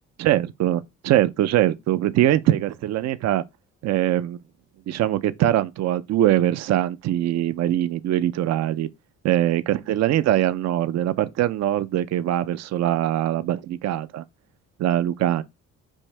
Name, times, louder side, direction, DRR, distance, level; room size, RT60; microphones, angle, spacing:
voice 1, 0.2-3.4 3.8-4.4 4.9-8.9 9.2-14.2 14.8-15.4, right 13 dB, 60° right, 0.5 m, -22 dB
5.4 x 2.7 x 3.1 m
cardioid pair, 90°, 30 cm